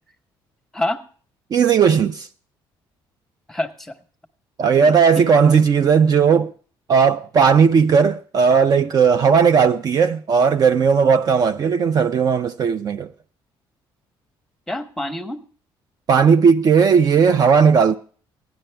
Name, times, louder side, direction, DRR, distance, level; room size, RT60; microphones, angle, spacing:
voice 1, 1.5-2.3 4.6-6.5 6.9-13.1 16.1-18.0, right 6 dB, 45° right, 0.5 m, -16 dB
voice 2, 3.5-4.0 4.8-5.3 14.7-15.4, left 1 dB, 5° left, 1.0 m, -27 dB
16.0 x 10.5 x 3.3 m
cardioid pair, 125°, 9 cm